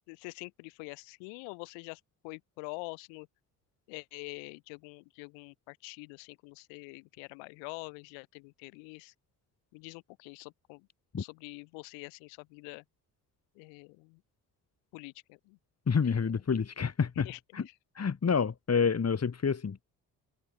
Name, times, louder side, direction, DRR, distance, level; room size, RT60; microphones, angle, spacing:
voice 1, 0.1-3.3 3.9-9.1 9.7-10.9 11.2-12.8 13.6-14.2 14.9-15.6 16.0-16.3 17.2-17.7, left 35 dB, 65° left, 6.2 m, -46 dB
voice 2, 15.9-17.3 17.5-17.7 18.0-19.8, left 6 dB, 30° left, 4.2 m, -28 dB
figure-of-eight pair, 45°, 48 cm